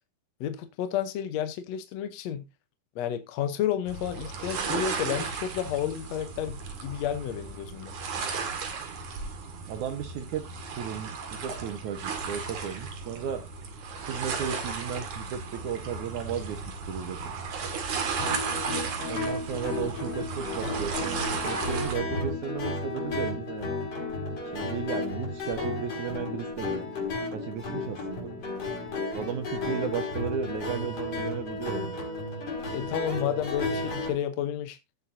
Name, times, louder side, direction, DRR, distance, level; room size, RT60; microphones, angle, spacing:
voice 1, 0.4-2.4 2.9-7.9 32.7-34.8, left 10 dB, 70° left, 1.7 m, -31 dB
sound 1, 3.9-22.0, right 5 dB, 60° right, 3.2 m, -35 dB
voice 2, 9.7-10.4 10.8-13.4 14.0-16.6 16.9-17.2 19.1-23.7 24.5-26.8 27.3-28.3 29.1-32.0, right 8 dB, 75° right, 1.8 m, -35 dB
sound 2, 18.2-34.1, left 2 dB, 45° left, 5.3 m, -33 dB
16.5 x 7.1 x 2.7 m
omnidirectional pair, 4.2 m